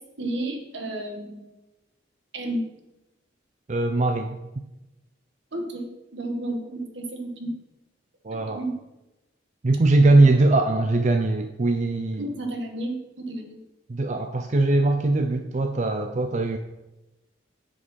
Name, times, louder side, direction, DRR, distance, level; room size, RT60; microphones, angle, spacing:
voice 1, 0.2-1.5 2.3-2.6 5.5-7.5 8.5-8.7 10.2-10.3 12.2-13.6, right 1 dB, 70° right, 3 dB, 1.6 m, -32 dB
voice 2, 3.7-4.4 8.2-8.6 9.6-12.3 13.9-16.6, right 2 dB, 40° right, 5 dB, 0.5 m, -21 dB
9.7 x 5.4 x 5.7 m, 0.99 s
head